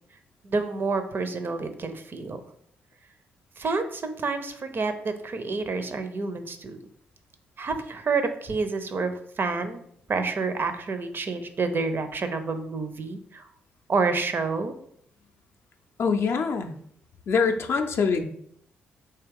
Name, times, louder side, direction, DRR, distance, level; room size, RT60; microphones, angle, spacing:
voice 1, 0.4-2.4 3.6-6.8 7.6-9.1 9.4-9.8 10.1-13.4 13.9-14.7, right 4 dB, 40° right, 8 dB, 0.5 m, -28 dB
voice 2, 16.0-16.7 17.3-18.2, left 5 dB, 50° left, 6 dB, 0.5 m, -24 dB
3.4 x 2.8 x 3.5 m, 0.68 s
hypercardioid pair, 40°, 5 cm